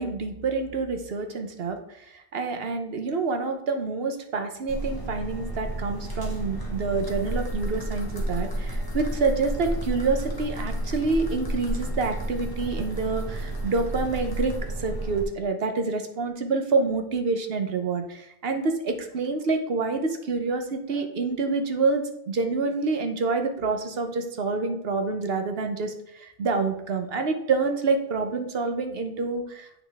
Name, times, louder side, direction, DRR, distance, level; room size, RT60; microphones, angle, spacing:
voice 1, 0.0-29.8, right 4 dB, 70° right, 6 dB, 1.2 m, -27 dB
Using My Inhaler, 4.7-15.2, right 1 dB, 20° left, 1.4 m, -31 dB
8.6 x 5.9 x 3.5 m, 0.76 s
omnidirectional pair, 1.0 m